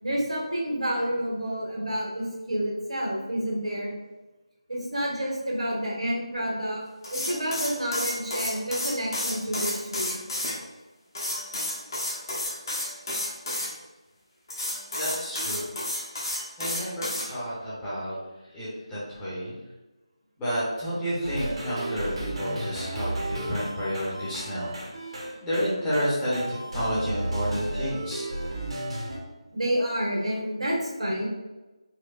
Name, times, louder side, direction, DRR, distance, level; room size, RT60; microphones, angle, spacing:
voice 1, 0.0-3.9 4.7-6.8 7.1-10.2 29.5-31.3, equal, 85° right, -3 dB, 1.4 m, -29 dB
sound 1, 7.0-10.5 11.1-13.7 14.5-17.3, left 1 dB, 40° left, 1.0 m, -31 dB
voice 2, 15.0-15.6 16.6-18.1 18.5-19.5 20.4-24.7 25.4-28.2, equal, 10° left, -11 dB, 0.8 m, -30 dB
sound 2, 21.2-29.2, right 1 dB, 65° right, 0.9 m, -33 dB
4.3 x 2.3 x 2.4 m, 1.1 s
figure-of-eight pair, 165°, 3 cm